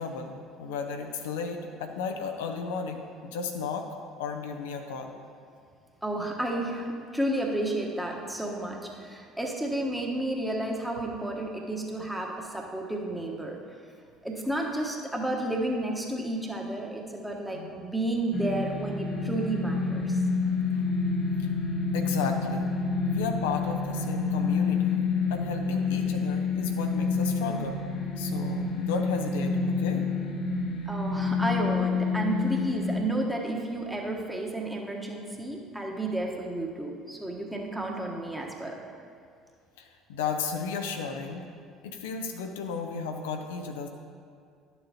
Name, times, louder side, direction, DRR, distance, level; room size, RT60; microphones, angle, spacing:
voice 1, 0.0-3.9 4.2-5.2 17.5-17.8 20.4-20.8 21.9-22.7 23.0-27.8 28.2-30.0 39.8-41.5 41.8-43.9, left 5 dB, 70° left, 4 dB, 0.5 m, -34 dB
voice 2, 6.0-13.6 14.2-20.2 30.9-38.8, right 1 dB, 5° right, -1 dB, 1.3 m, -31 dB
sound 1, 18.3-33.0, left 4 dB, 45° left, 0.8 m, -28 dB
11.0 x 6.9 x 2.9 m, 2.3 s
figure-of-eight pair, 60°, 0 cm